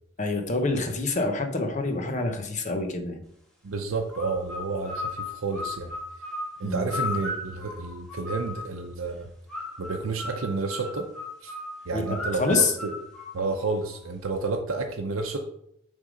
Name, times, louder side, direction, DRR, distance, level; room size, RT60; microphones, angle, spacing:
voice 1, 0.2-3.2 6.6-6.9 11.9-12.8, left 3 dB, 35° left, 5 dB, 0.9 m, -27 dB
voice 2, 3.6-5.9 6.6-9.3 9.8-11.1 11.4-11.5 11.9-12.9 13.3-15.4, right 3 dB, 80° right, 2 dB, 0.7 m, -30 dB
sound 1, 4.1-8.8 9.5-13.9, left 2 dB, 5° left, 1.7 m, -36 dB
6.6 x 3.7 x 5.1 m, 0.74 s
head